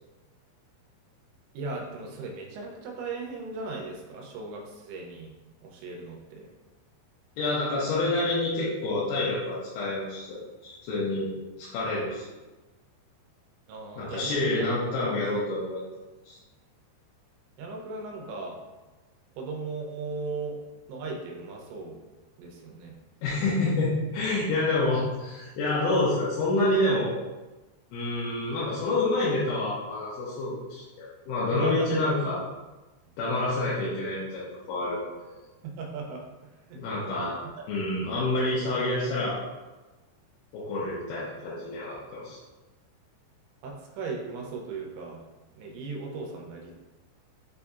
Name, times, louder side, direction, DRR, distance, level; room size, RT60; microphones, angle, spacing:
voice 1, 1.5-5.3 5.6-6.5 13.7-14.7 17.6-18.6 19.4-20.6 20.9-22.0 22.4-22.9 31.5-32.0 35.6-36.2 36.7-36.8 38.5-38.9 43.6-45.2 45.6-46.7, right 3 dB, 80° right, 0 dB, 2.7 m, -37 dB
voice 2, 7.4-11.3 11.6-12.3 14.0-15.8 16.2-16.4 23.2-27.1 27.9-32.4 33.2-34.4 34.7-35.0 35.2-35.4 36.8-37.4 37.7-39.4 40.5-42.4, left 2 dB, 85° left, -8 dB, 3.4 m, -28 dB
7.5 x 2.7 x 2.3 m, 1.1 s
omnidirectional pair, 5.5 m